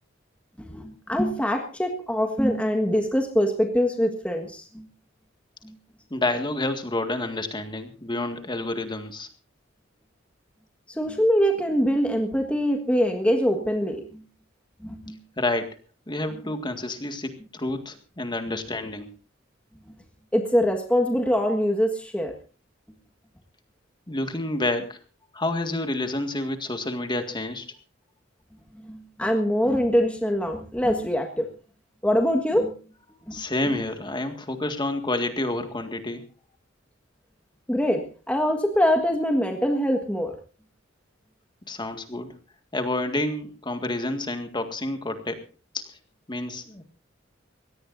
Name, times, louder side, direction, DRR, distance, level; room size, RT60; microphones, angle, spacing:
voice 1, 0.6-4.9 5.6-5.7 10.9-14.2 14.8-15.2 20.3-22.3 28.8-31.5 32.0-32.7 33.3-33.4 37.7-40.4, equal, 5° left, 3 dB, 1.6 m, -24 dB
voice 2, 6.1-9.3 15.4-15.7 16.1-19.1 24.1-25.0 25.3-27.7 33.3-36.2 41.7-42.3 42.7-45.4 45.7-45.8 46.3-46.8, left 2 dB, 25° left, 7 dB, 1.9 m, -29 dB
23.0 x 18.0 x 2.6 m, 0.34 s
head